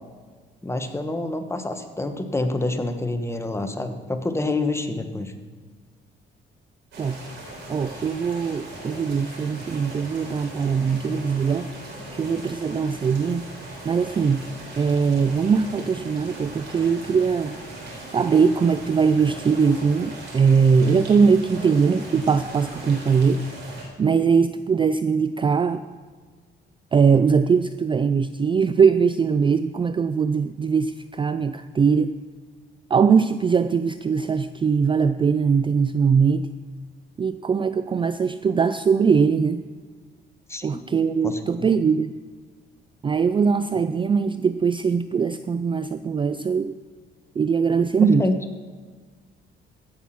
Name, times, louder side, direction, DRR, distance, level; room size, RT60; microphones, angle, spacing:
voice 1, 0.6-5.3 40.5-40.8 41.2-41.7 48.0-48.4, left 2 dB, 15° left, 7 dB, 1.2 m, -27 dB
sound 1, 6.9-23.8, right 2 dB, 70° right, 4.0 m, -39 dB
voice 2, 7.7-11.7 12.1-13.5 13.8-14.5 14.7-17.6 18.1-23.4 24.0-25.8 26.9-32.1 32.9-36.5 37.2-39.6 40.6-42.1 43.0-46.7 47.4-48.3, right 5 dB, 25° right, 11 dB, 0.3 m, -21 dB
15.5 x 6.0 x 5.8 m, 1.5 s
cardioid pair, 90°, 20 cm